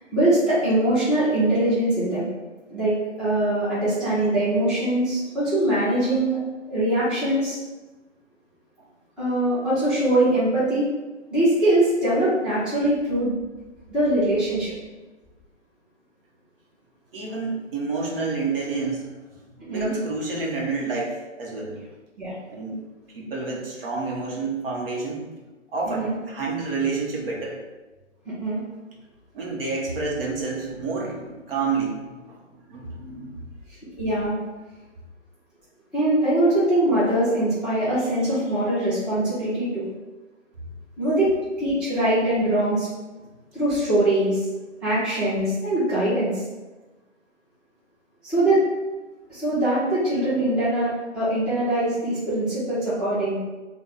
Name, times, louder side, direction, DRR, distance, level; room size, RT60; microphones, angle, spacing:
voice 1, 0.1-2.3 2.7-6.4 6.7-7.6 9.2-10.8 11.3-13.4 13.9-14.7 19.6-19.9 22.2-22.4 26.0-26.2 28.4-28.6 34.0-34.4 35.9-39.8 41.0-41.3 41.6-42.9 43.5-44.5 44.8-46.4 48.2-48.6 49.3-53.4, right 1 dB, ahead, -13 dB, 0.7 m, -22 dB
voice 2, 17.1-19.4 19.7-21.8 22.5-22.8 23.1-25.3 25.7-27.6 29.3-32.4 32.7-33.4 41.1-41.2, right 4 dB, 50° right, -2 dB, 0.9 m, -29 dB
3.4 x 2.2 x 4.0 m, 1.2 s
hypercardioid pair, 140°, 37 cm